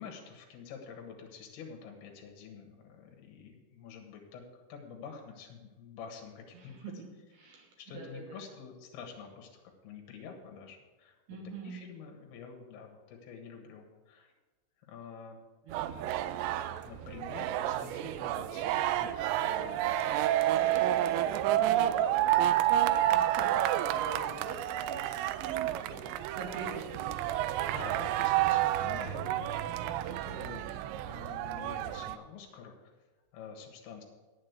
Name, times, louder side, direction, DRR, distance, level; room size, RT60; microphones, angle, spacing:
voice 1, 0.0-6.9 7.8-11.2 11.6-14.3 14.8-15.4 16.8-20.4 27.7-32.9 33.3-34.0, left 6 dB, 65° left, 2 dB, 3.1 m, -48 dB
voice 2, 6.5-7.0 7.4-8.4 11.3-11.8 15.6-16.2 20.5-27.2 29.0-29.4, right 3 dB, 65° right, 0 dB, 3.0 m, -44 dB
sound 1, 15.7-32.2, right 13 dB, 85° right, 2.5 m, -30 dB
8.7 x 7.4 x 8.1 m, 1.2 s
omnidirectional pair, 5.6 m